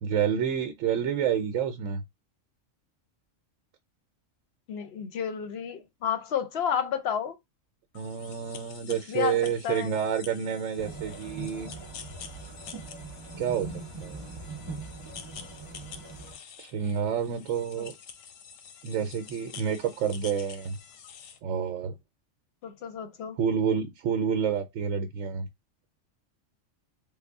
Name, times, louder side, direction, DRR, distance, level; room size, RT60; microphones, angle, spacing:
voice 1, 0.0-2.0 7.9-11.7 13.4-13.7 14.0-14.3 16.6-17.9 18.8-20.8 21.4-21.9 23.4-25.5, right 7 dB, 80° right, 0.9 m, -29 dB
voice 2, 4.7-7.4 9.1-9.9 17.8-17.9 22.6-23.4, left 8 dB, 60° left, 0.7 m, -31 dB
sound 1, 7.9-21.4, left 7 dB, 90° left, 1.0 m, -48 dB
sound 2, 10.8-16.4, right 3 dB, 30° right, 0.6 m, -41 dB
3.4 x 2.1 x 3.4 m
omnidirectional pair, 1.3 m